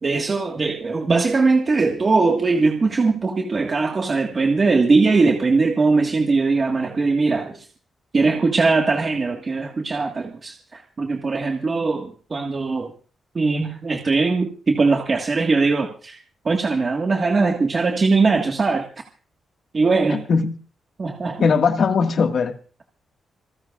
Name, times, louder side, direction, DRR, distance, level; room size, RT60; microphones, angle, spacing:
voice 1, 0.0-7.7 8.1-12.9 13.3-18.9 19.7-20.2 21.0-21.5, right 3 dB, 35° right, 1.7 m, -20 dB
voice 2, 20.1-20.5 21.4-22.6, left 5 dB, 55° left, 1.8 m, -19 dB
27.0 x 14.0 x 2.5 m
cardioid pair, 130°, 0 cm